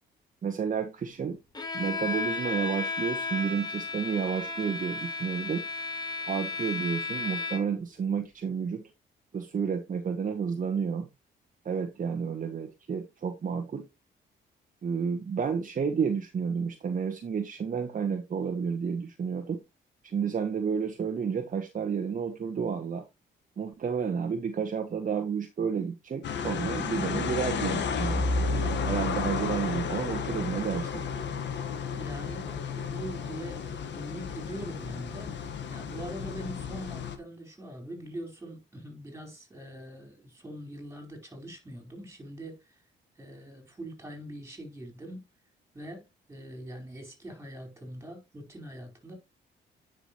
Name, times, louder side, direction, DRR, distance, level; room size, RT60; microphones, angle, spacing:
voice 1, 0.4-1.4 1.7-5.6 6.3-8.8 9.3-11.1 11.6-13.8 14.8-19.6 20.0-23.1 23.6-28.3 28.9-31.0, right 6 dB, 40° right, 1.3 m, -31 dB
Bowed string instrument, 1.5-7.9, left 3 dB, 20° left, 2.0 m, -34 dB
sound 1, 26.2-37.2, left 5 dB, 65° left, 1.4 m, -32 dB
voice 2, 31.9-42.8 43.2-45.3 45.7-49.1, right 1 dB, 15° right, 4.7 m, -43 dB
9.9 x 6.0 x 3.0 m
cardioid pair, 90°, 20 cm